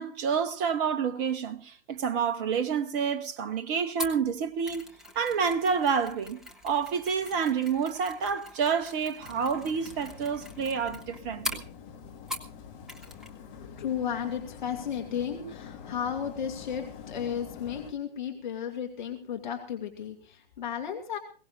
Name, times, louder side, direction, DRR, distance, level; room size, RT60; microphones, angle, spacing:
voice 1, 0.0-4.8 5.2-11.6, right 6 dB, 20° right, 0.7 m, -29 dB
Mechanisms, 4.0-12.6 12.9-13.3 13.6-13.7, left 1 dB, ahead, 1.1 m, -42 dB
sound 1, 9.2-17.9, left 7 dB, 25° left, 3.1 m, -46 dB
voice 2, 13.6-21.2, left 8 dB, 45° left, 2.5 m, -34 dB
22.0 x 18.0 x 2.6 m
figure-of-eight pair, 125°, 32 cm